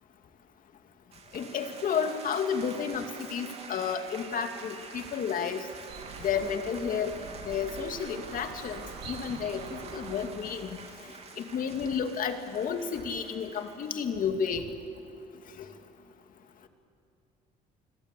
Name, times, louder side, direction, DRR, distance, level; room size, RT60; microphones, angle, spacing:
sound 1, 1.1-14.3, right 4 dB, 40° right, 3.4 m, -47 dB
voice 1, 1.3-5.6 6.2-7.1 7.5-10.8 11.4-14.7, left 7 dB, 55° left, 6 dB, 2.4 m, -31 dB
Morning birds spring may Omsk, 5.9-10.9, right 5 dB, 75° right, 3.5 m, -45 dB
28.0 x 21.5 x 8.4 m, 2.7 s
cardioid pair, 110°, 17 cm